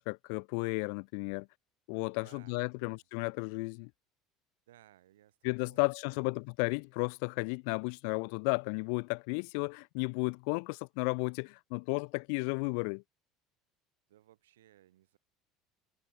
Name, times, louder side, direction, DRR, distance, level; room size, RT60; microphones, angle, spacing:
voice 1, 0.0-1.5 1.9-3.9 5.4-13.0, left 40 dB or more, 70° left, 0.3 m, -33 dB
voice 2, 2.2-3.1 4.7-5.8 6.1-6.4 14.1-15.2, right 13 dB, 80° right, 6.4 m, -62 dB
hypercardioid pair, 70°, 0 cm